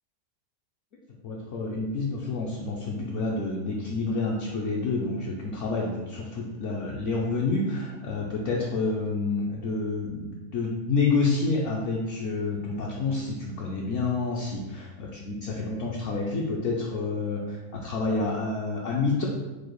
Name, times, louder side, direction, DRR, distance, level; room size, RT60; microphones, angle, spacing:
voice 1, 1.2-19.3, left 3 dB, 65° left, -3 dB, 0.9 m, -28 dB
4.6 x 2.4 x 4.5 m, 1.2 s
omnidirectional pair, 1.5 m